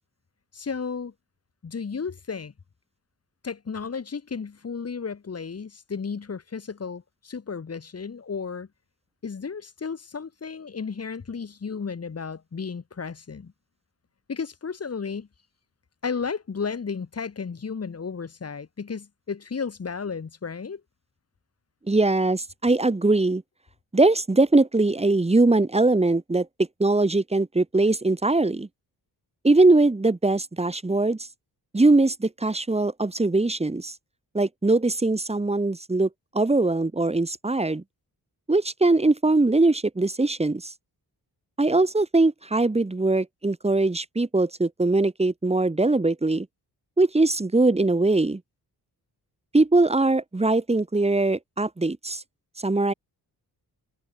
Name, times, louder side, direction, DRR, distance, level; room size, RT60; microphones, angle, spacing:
voice 1, 0.5-1.1 1.6-2.5 3.4-8.7 9.2-13.5 14.3-15.3 16.0-20.8, left 5 dB, 40° left, 5.9 m, -33 dB
voice 2, 21.9-23.4 23.9-26.5 26.8-28.7 29.4-31.2 31.7-33.9 34.3-36.1 36.3-37.8 38.5-40.7 41.6-46.5 47.0-48.4 49.5-52.2 52.6-52.9, right 2 dB, 15° right, 3.2 m, -21 dB
wide cardioid pair, 180°, 38 cm